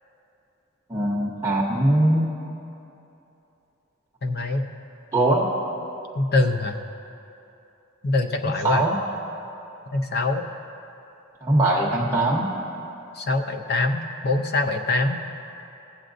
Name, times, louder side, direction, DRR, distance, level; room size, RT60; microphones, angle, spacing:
voice 1, 0.9-2.3 5.1-5.5 8.6-9.0 11.4-12.5, right 1 dB, 15° right, -3 dB, 0.8 m, -21 dB
voice 2, 4.2-4.7 6.2-6.8 8.0-8.9 9.9-10.5 13.2-15.2, left 2 dB, 50° left, 5 dB, 0.6 m, -23 dB
19.5 x 7.6 x 2.6 m, 2.9 s
head